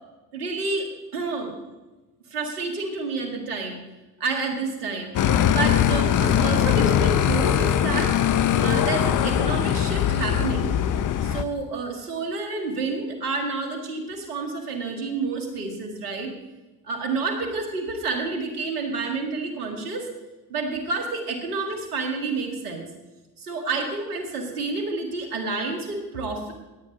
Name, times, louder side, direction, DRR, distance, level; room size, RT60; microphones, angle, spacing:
voice 1, 0.3-1.5 2.3-3.8 4.2-5.1 5.5-8.1 8.6-10.7 11.2-16.3 16.8-20.1 20.5-22.9 23.4-26.5, right 3 dB, 90° right, 4 dB, 2.0 m, -29 dB
sound 1, 5.1-11.4, left 9 dB, 45° left, 0.9 m, -21 dB
17.0 x 9.0 x 4.0 m, 1.1 s
hypercardioid pair, 60°, 44 cm